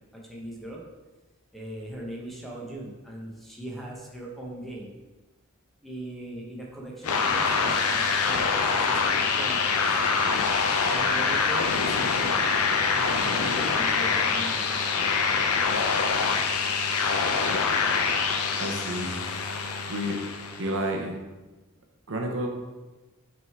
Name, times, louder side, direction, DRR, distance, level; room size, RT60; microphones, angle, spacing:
voice 1, 0.1-0.8 1.5-5.0 5.8-10.0 10.9-12.4 12.9-15.1, right 1 dB, ahead, -3 dB, 0.9 m, -39 dB
sound 1, 7.0-20.7, left 5 dB, 85° left, 0.6 m, -25 dB
voice 2, 18.6-19.1 19.9-20.1 20.6-21.1 22.1-22.5, equal, 60° right, 2 dB, 0.8 m, -30 dB
5.8 x 3.7 x 4.6 m, 1.2 s
head